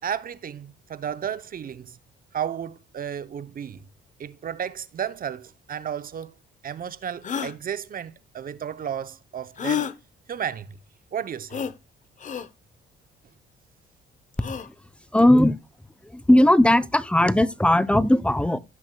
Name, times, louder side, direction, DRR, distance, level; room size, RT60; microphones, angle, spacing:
voice 1, 0.0-2.0 2.3-3.8 4.2-6.3 6.6-9.9 10.3-10.8 11.1-11.6, right 8 dB, 45° right, 0.7 m, -33 dB
sound 1, 6.2-6.3 7.2-7.5 9.6-9.9 11.5-11.7 12.2-12.5 14.3-14.7, left 7 dB, 40° left, 0.8 m, -29 dB
voice 2, 15.1-15.6 16.0-18.6, left 1 dB, 5° left, 0.6 m, -18 dB
15.5 x 6.1 x 2.3 m
cardioid pair, 90°, 20 cm